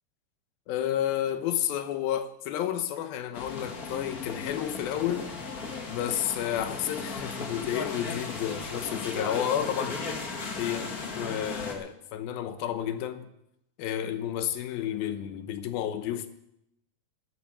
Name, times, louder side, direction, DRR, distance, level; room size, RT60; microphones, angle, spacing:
voice 1, 0.7-5.3 5.9-10.0 10.6-13.3 13.8-16.3, left 10 dB, 80° left, 2.7 m, -31 dB
sound 1, 3.3-11.7, left 4 dB, 55° left, 1.0 m, -36 dB
12.0 x 9.9 x 7.4 m
omnidirectional pair, 4.3 m